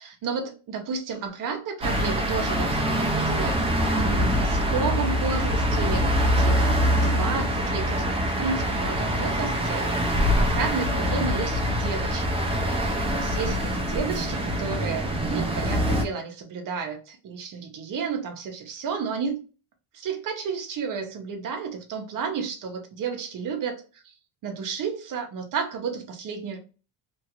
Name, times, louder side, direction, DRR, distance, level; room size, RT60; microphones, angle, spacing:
voice 1, 0.0-3.7 4.0-9.9 10.2-19.4 19.9-24.0 24.4-26.6, right 5 dB, 40° right, 0.7 m, -32 dB
sound 1, 1.8-16.0, equal, 15° right, 0.3 m, -24 dB
3.0 x 2.4 x 2.8 m
cardioid pair, 175°, 49 cm